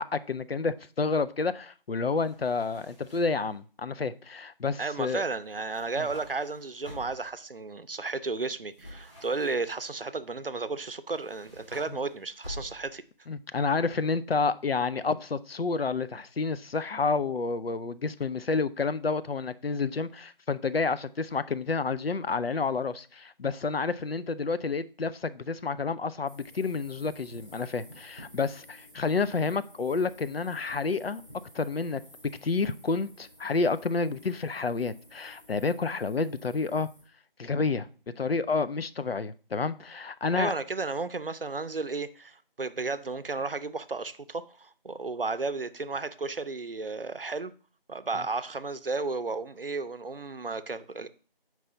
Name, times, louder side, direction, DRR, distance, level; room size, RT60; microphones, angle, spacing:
voice 1, 0.0-5.2 6.0-6.1 13.3-31.2 31.5-32.0 32.4-36.9 37.4-37.9 38.2-40.5, left 4 dB, 85° left, 0.5 m, -29 dB
sound 1, 2.2-3.5 5.5-7.3 8.7-9.9 11.1-13.1, left 1 dB, 30° left, 2.8 m, -48 dB
voice 2, 4.8-13.0 40.4-47.5 47.9-51.1, right 3 dB, 70° right, 0.6 m, -33 dB
sound 2, 26.3-37.0, equal, 60° left, 3.6 m, -54 dB
5.7 x 4.7 x 3.9 m
figure-of-eight pair, 180°, 29 cm